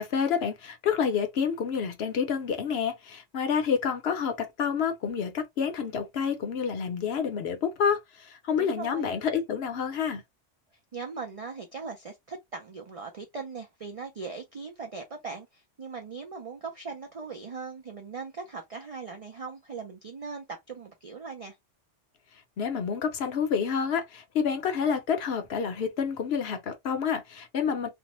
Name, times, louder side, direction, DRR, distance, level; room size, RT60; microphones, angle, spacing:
voice 1, 0.0-10.2 22.6-27.9, left 6 dB, 65° left, 0.8 m, -28 dB
voice 2, 8.5-9.1 10.9-21.6, right 4 dB, 65° right, 0.3 m, -39 dB
2.6 x 2.0 x 2.9 m
omnidirectional pair, 1.3 m